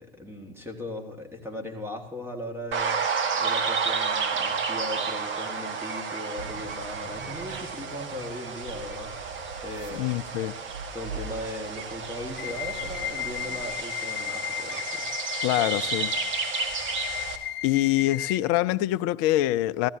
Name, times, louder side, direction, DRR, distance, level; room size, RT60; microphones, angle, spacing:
voice 1, 0.0-10.2 10.9-15.3 15.5-15.9, left 1 dB, 10° right, 1.8 m, -38 dB
sound 1, 2.7-17.4, right 5 dB, 40° right, 1.5 m, -31 dB
sound 2, 6.4-13.7, right 3 dB, 65° right, 1.8 m, -43 dB
voice 2, 9.9-10.5 15.4-16.1 17.6-19.9, left 15 dB, 50° left, 0.5 m, -25 dB
sound 3, 12.4-18.4, left 12 dB, 35° left, 0.8 m, -34 dB
16.5 x 13.5 x 2.8 m
hypercardioid pair, 80°, 31 cm